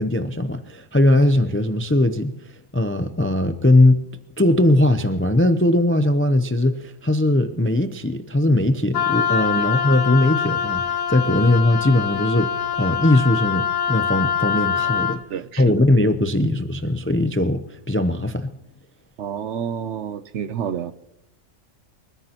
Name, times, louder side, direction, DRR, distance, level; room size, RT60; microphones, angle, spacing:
voice 1, 0.0-2.3 2.7-4.0 4.4-15.2 15.6-18.5, left 1 dB, 15° left, 0.4 m, -19 dB
Wind instrument woodwind instrument, 8.9-15.2, left 8 dB, 80° left, 1.2 m, -24 dB
voice 2, 15.3-15.8 19.2-20.9, right 8 dB, 65° right, 1.0 m, -29 dB
26.5 x 13.5 x 3.0 m
omnidirectional pair, 1.4 m